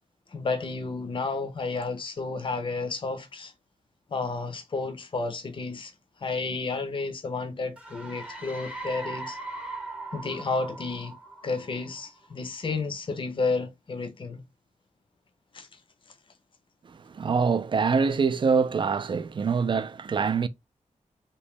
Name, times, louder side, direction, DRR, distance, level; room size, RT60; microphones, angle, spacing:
voice 1, 0.3-3.5 4.1-5.9 6.2-9.4 10.1-11.2 11.4-14.4 15.5-15.7, left 3 dB, 40° left, 0.6 m, -31 dB
sound 1, 7.8-12.3, right 2 dB, 10° right, 0.7 m, -40 dB
voice 2, 16.9-20.5, right 5 dB, 40° right, 0.3 m, -25 dB
3.0 x 2.7 x 3.2 m
wide cardioid pair, 160°, 13 cm